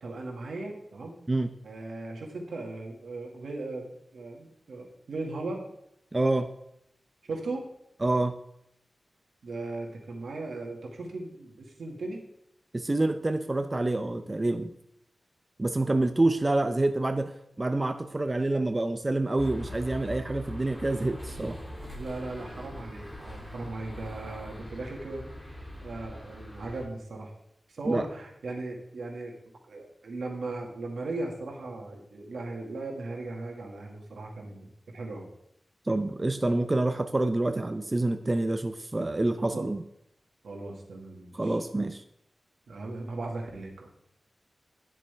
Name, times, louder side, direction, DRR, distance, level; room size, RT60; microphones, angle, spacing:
voice 1, 0.0-1.2 1.6-5.6 7.2-7.7 9.4-12.3 21.9-25.2 25.8-27.3 27.7-29.4 29.7-35.3 39.5-39.7 40.4-41.5 42.7-43.9, right 2 dB, 85° right, 0 dB, 1.9 m, -37 dB
voice 2, 6.1-6.5 8.0-8.4 12.7-14.7 15.6-21.6 27.9-28.0 35.9-39.8 41.3-42.0, right 2 dB, 25° right, 8 dB, 0.5 m, -27 dB
sound 1, 19.4-26.9, equal, 15° left, 3.0 m, -42 dB
10.0 x 7.5 x 3.4 m, 0.78 s
wide cardioid pair, 95°, 0 cm